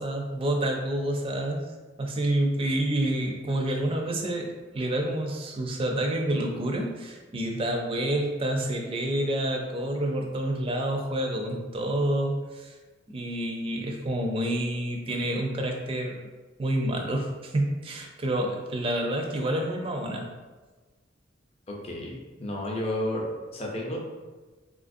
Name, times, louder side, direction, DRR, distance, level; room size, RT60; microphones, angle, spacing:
voice 1, 0.0-1.6 2.0-4.5 4.7-12.7 13.1-16.2 16.6-20.3, right 1 dB, 30° right, 2 dB, 0.4 m, -28 dB
voice 2, 21.7-24.0, left 1 dB, 30° left, -1 dB, 0.6 m, -32 dB
4.1 x 2.4 x 2.5 m, 1.3 s
head